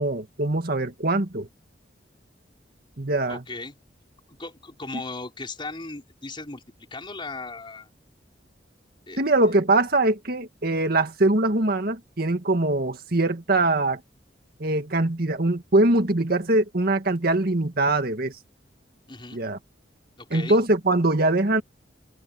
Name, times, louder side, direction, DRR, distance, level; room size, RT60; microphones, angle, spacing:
voice 1, 0.0-1.5 3.0-3.4 9.2-14.0 14.6-18.3 19.3-19.6 20.3-21.6, right 2 dB, 55° right, 1.9 m, -22 dB
voice 2, 3.3-3.7 4.4-6.6 6.9-7.9 9.1-9.2 19.1-19.4 20.2-20.6, left 3 dB, 30° left, 4.7 m, -37 dB
head